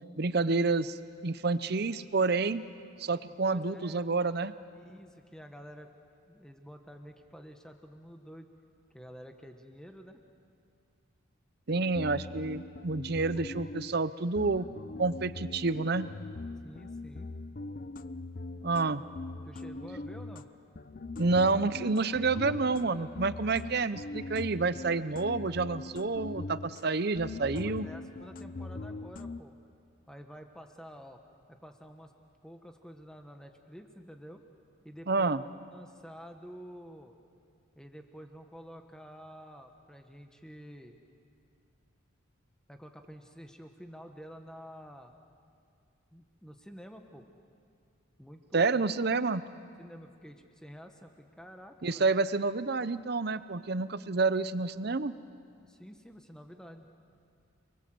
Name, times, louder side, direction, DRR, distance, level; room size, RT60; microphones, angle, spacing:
voice 1, 0.2-1.0 1.2-2.6 3.0-4.5 11.7-14.7 15.0-16.1 18.6-19.0 21.2-27.9 35.1-35.4 48.5-49.4 51.8-55.1, right 3 dB, 50° right, 15 dB, 0.7 m, -29 dB
voice 2, 3.5-4.0 4.7-5.9 6.3-8.5 8.9-10.2 16.6-17.3 19.4-20.5 27.5-29.6 30.1-31.2 31.5-32.1 32.4-34.4 34.8-35.4 35.7-37.2 37.8-41.0 42.7-45.2 46.1-47.3 48.2-48.6 49.8-52.1 55.7-56.9, equal, 5° left, 5 dB, 1.3 m, -49 dB
sound 1, 11.7-14.1 14.3-20.5 20.7-26.9 27.2-29.4, left 2 dB, 40° left, 0.6 m, -41 dB
29.0 x 23.0 x 7.8 m, 2.3 s
head